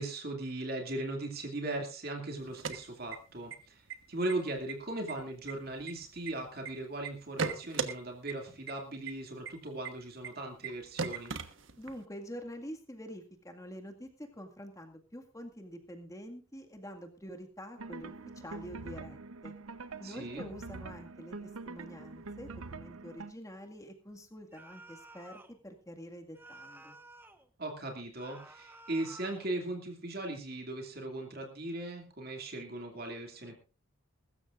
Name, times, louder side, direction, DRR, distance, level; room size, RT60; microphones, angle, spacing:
voice 1, 0.0-11.3 20.0-20.4 27.6-33.6, right 2 dB, 45° right, 2 dB, 2.5 m, -38 dB
sound 1, 2.4-3.5 3.9-4.0 4.3-4.7 5.1-6.7 7.0-7.9 8.3-8.4 8.7-8.8 9.1-9.2 9.5-9.6 9.8-9.9 10.2-10.3 10.6-10.7 11.0-12.0, right 5 dB, 65° right, 1.3 m, -36 dB
voice 2, 11.8-19.5 20.0-27.0, equal, 15° left, 4 dB, 1.9 m, -46 dB
sound 2, 17.8-23.3, right 3 dB, 85° right, 0.9 m, -45 dB
sound 3, 24.5-25.6 26.3-27.5 28.2-29.5, right 2 dB, 10° right, 1.2 m, -52 dB
22.0 x 13.0 x 2.5 m, 0.34 s
head